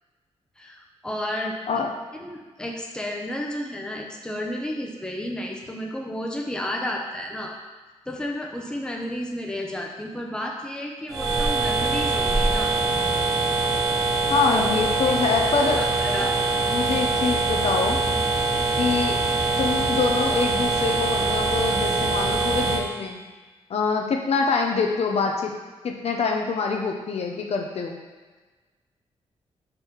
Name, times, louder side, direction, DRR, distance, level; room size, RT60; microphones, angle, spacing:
voice 1, 0.6-1.6 2.2-7.6 8.1-12.7 14.5-14.6 15.0-15.1 15.8-16.4, left 1 dB, 5° left, 0 dB, 0.8 m, -32 dB
sound 1, 11.1-22.8, right 3 dB, 30° right, 1.1 m, -23 dB
voice 2, 14.3-15.9 16.7-18.0 18.8-19.2 19.6-23.2 23.7-25.5 25.8-28.0, left 4 dB, 65° left, 2 dB, 0.9 m, -25 dB
5.6 x 5.4 x 4.5 m, 1.3 s
wide cardioid pair, 135°, 11 cm